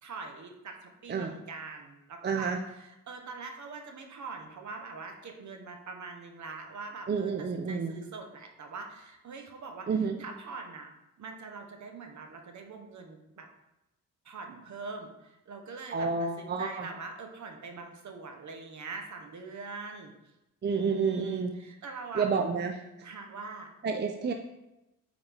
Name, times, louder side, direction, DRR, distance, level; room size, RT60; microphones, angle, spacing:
voice 1, 0.0-10.9 11.2-13.5 14.2-20.1 20.7-22.3 23.0-23.7, right 4 dB, 60° right, 4 dB, 1.1 m, -43 dB
voice 2, 2.2-2.6 7.1-8.0 9.9-10.2 15.9-16.9 20.6-21.6 22.2-22.8 23.8-24.3, right 5 dB, 30° right, 4 dB, 0.5 m, -29 dB
8.9 x 4.0 x 3.5 m, 0.94 s
cardioid pair, 90°, 33 cm